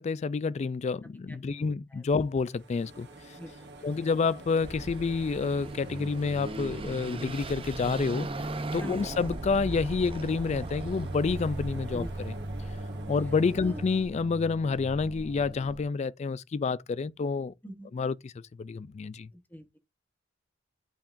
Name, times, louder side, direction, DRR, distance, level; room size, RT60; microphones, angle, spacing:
voice 1, 0.0-3.1 3.8-8.3 8.7-12.4 13.1-17.5 17.9-18.3 18.6-19.3, left 4 dB, 35° left, 0.3 m, -29 dB
voice 2, 1.3-2.0 3.4-4.1 8.8-9.1 11.9-12.1 12.6-12.7 13.6-13.8 17.6-17.9 19.3-19.8, equal, 10° left, 1.0 m, -44 dB
sound 1, 2.4-13.9, right 2 dB, 55° right, 1.7 m, -45 dB
Car passing by / Accelerating revving vroom, 4.6-15.8, right 2 dB, 25° right, 0.6 m, -38 dB
8.8 x 5.6 x 2.6 m
head